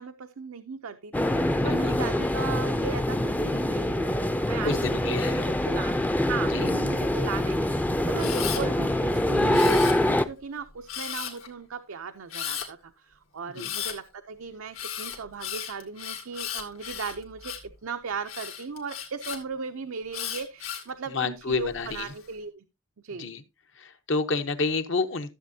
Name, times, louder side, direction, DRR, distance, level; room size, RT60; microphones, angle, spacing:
voice 1, 0.0-6.0 6.3-22.6 23.0-23.3, right 5 dB, 80° right, 0.6 m, -37 dB
sound 1, 1.1-10.3, left 1 dB, 10° left, 0.5 m, -25 dB
voice 2, 1.6-1.9 4.6-5.5 6.5-6.6 13.6-13.7 21.1-22.1 23.2-23.4 23.8-25.3, left 3 dB, 60° left, 0.9 m, -29 dB
Camera, 8.2-8.6 9.5-10.3 10.9-11.5 12.3-12.7 13.6-14.0 14.7-17.7 18.3-19.4 20.1-20.9 21.5-22.0, left 9 dB, 80° left, 2.2 m, -35 dB
13.5 x 7.5 x 2.7 m
head